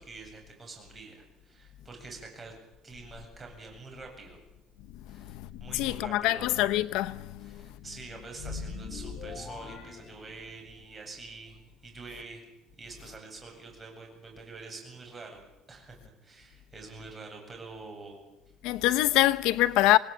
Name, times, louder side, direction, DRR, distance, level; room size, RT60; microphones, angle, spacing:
voice 1, 0.0-2.5 2.8-4.4 5.1-6.5 7.4-12.4 12.8-15.4 15.7-18.2, right 3 dB, 20° right, 7.9 m, -46 dB
voice 2, 5.2-5.5 5.7-7.6 18.6-20.0, left 16 dB, 80° left, 0.9 m, -25 dB
sound 1, 8.3-10.9, left 4 dB, 40° left, 2.8 m, -41 dB
27.5 x 19.5 x 8.8 m
cardioid pair, 145°, 0 cm